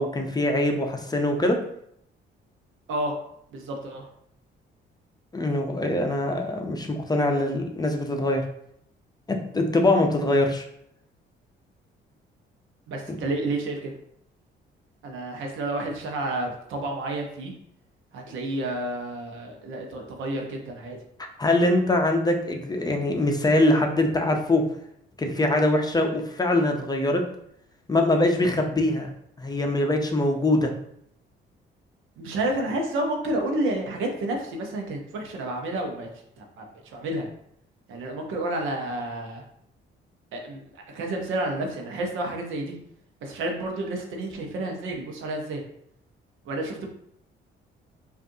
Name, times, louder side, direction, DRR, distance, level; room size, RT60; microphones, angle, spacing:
voice 1, 0.0-1.6 5.3-8.5 9.3-10.6 13.1-13.2 21.4-24.6 25.2-27.2 27.9-29.1 29.4-30.7, left 1 dB, 20° left, 3 dB, 0.6 m, -23 dB
voice 2, 3.5-4.1 12.9-13.9 15.0-17.5 18.1-21.0 32.2-36.1 36.4-37.3 37.9-39.4 40.3-42.8 43.2-45.6 46.4-46.9, right 1 dB, 85° right, 2 dB, 0.8 m, -30 dB
5.0 x 2.6 x 2.7 m, 0.72 s
cardioid pair, 90°, 20 cm